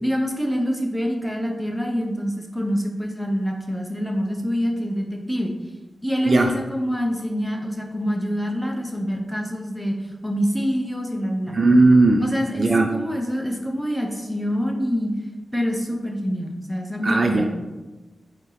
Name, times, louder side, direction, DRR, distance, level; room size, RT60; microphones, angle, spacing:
voice 1, 0.0-5.5 6.0-11.6 12.2-15.1 15.5-17.5, equal, 5° right, 1 dB, 0.8 m, -26 dB
voice 2, 11.5-12.2 12.6-12.9 17.0-17.5, right 2 dB, 50° right, 3 dB, 0.4 m, -16 dB
4.6 x 2.8 x 3.8 m, 1.2 s
cardioid pair, 70°, 0 cm